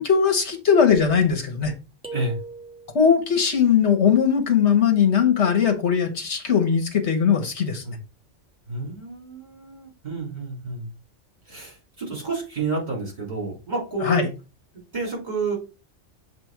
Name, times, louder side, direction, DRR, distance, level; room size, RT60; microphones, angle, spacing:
voice 1, 0.0-1.7 2.9-7.8 14.0-14.3, left 7 dB, 70° left, 5 dB, 1.5 m, -19 dB
sound 1, 2.0-3.2, right 3 dB, 5° right, 1.1 m, -37 dB
voice 2, 8.7-10.9 11.5-14.3 14.7-15.6, right 3 dB, 40° right, -3 dB, 3.7 m, -30 dB
7.3 x 3.5 x 4.5 m, 0.30 s
omnidirectional pair, 1.2 m